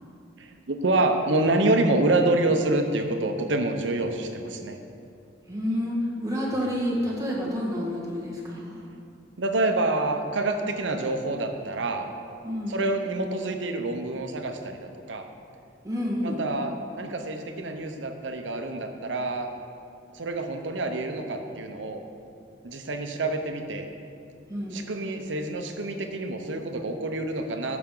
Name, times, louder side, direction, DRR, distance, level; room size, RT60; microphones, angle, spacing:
voice 1, 0.4-4.8 6.5-6.7 9.4-12.1 12.7-15.3 16.2-19.5 20.1-22.0 22.6-23.9 24.7-27.8, right 2 dB, 90° right, 5 dB, 0.8 m, -27 dB
voice 2, 5.5-8.8 12.4-12.8 15.8-16.4 24.5-24.8, equal, 20° right, -4 dB, 1.7 m, -29 dB
14.5 x 5.9 x 3.9 m, 2.5 s
head